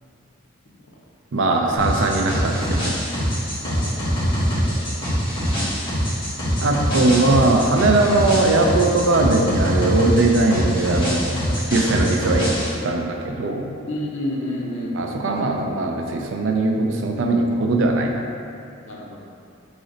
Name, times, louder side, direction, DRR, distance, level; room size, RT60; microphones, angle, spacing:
voice 1, 1.3-2.9 6.6-11.4 11.7-12.5 12.8-13.7 14.9-18.2, right 2 dB, 65° right, 2 dB, 0.4 m, -20 dB
sound 1, 1.8-12.7, equal, 25° left, 1.4 m, -23 dB
voice 2, 3.6-4.4 4.6-4.8 5.1-5.3 13.9-15.2 18.8-19.2, left 1 dB, 70° left, -2 dB, 0.7 m, -30 dB
3.9 x 3.1 x 3.9 m, 2.5 s
head